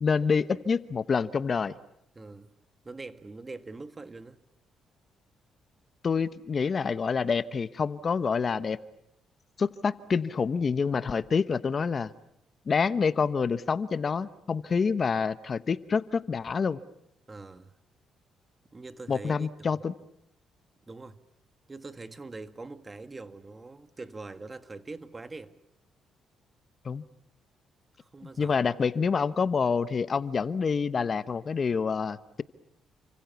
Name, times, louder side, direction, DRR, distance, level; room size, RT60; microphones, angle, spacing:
voice 1, 0.0-1.7 6.0-8.8 9.6-12.1 12.7-16.8 19.1-19.9 26.8-27.0 28.4-32.4, left 5 dB, 40° left, 1.0 m, -27 dB
voice 2, 2.1-2.5 2.8-4.4 17.3-17.8 18.7-19.8 20.9-21.2 21.7-25.5 28.0-28.6, right 3 dB, 25° right, 1.7 m, -43 dB
30.0 x 26.0 x 7.1 m
cardioid pair, 90°, 0 cm